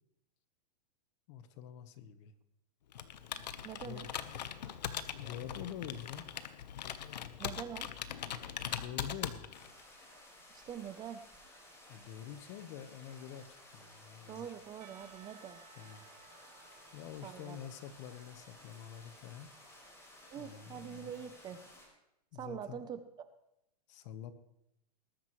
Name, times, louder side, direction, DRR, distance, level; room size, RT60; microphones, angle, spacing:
voice 1, 1.3-2.3 3.9-4.1 5.2-6.3 8.7-9.5 11.9-14.5 15.8-16.0 16.9-19.5 20.3-21.1 22.3-22.8 23.9-24.3, left 9 dB, 45° left, 11 dB, 1.3 m, -46 dB
Computer keyboard, 2.9-9.8, left 9 dB, 85° left, 1.1 m, -41 dB
voice 2, 3.6-4.1 7.4-7.9 10.5-11.2 14.3-15.6 17.2-17.6 20.3-21.6 22.4-23.0, right 9 dB, 20° right, 11 dB, 0.7 m, -44 dB
sound 1, 9.5-21.9, left 1 dB, 15° left, 5.0 m, -57 dB
Percussion / Church bell, 14.8-19.8, right 10 dB, 65° right, 1.4 m, -62 dB
20.0 x 12.0 x 3.2 m, 0.85 s
hypercardioid pair, 145°, 21 cm